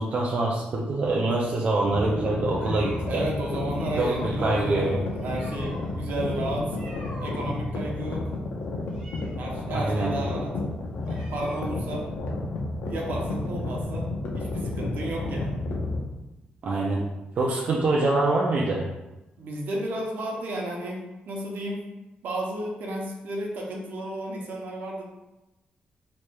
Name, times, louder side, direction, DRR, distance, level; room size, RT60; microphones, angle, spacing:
voice 1, 0.0-3.2 4.0-4.9 9.7-10.1 16.6-17.0 17.4-18.8, right 2 dB, 45° right, -3 dB, 0.4 m, -25 dB
sound 1, 1.0-3.1 3.6-12.0, equal, 25° right, 1.4 m, -46 dB
sound 2, 1.9-16.0, left 2 dB, 75° left, 0.6 m, -31 dB
voice 2, 3.1-6.8 7.2-8.3 9.3-10.5 11.1-12.1 12.8-15.5 19.4-21.0 21.3-21.8 22.2-25.0, right 1 dB, 75° right, -1 dB, 0.8 m, -33 dB
4.5 x 3.0 x 2.2 m, 1.0 s
wide cardioid pair, 165°, 3 cm